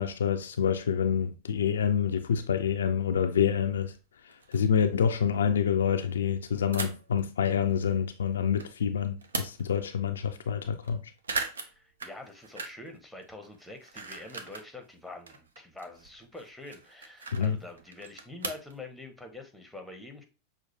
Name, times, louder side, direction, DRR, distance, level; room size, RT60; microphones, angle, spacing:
voice 1, 0.0-3.9 4.5-11.0 17.3-17.6, left 7 dB, 65° left, 0.3 m, -27 dB
sound 1, 1.8-1.9 3.0-3.1 3.6-3.7 3.9-4.0 4.3-4.8 6.7-7.2 7.7-8.7 9.0-9.9 10.3-10.4 10.6-10.9 11.2-13.0 13.2-14.7 15.1-18.8, right 4 dB, 70° right, 0.5 m, -39 dB
voice 2, 11.6-20.2, left 2 dB, 5° left, 0.8 m, -45 dB
5.9 x 2.5 x 2.8 m
figure-of-eight pair, 90°, 0 cm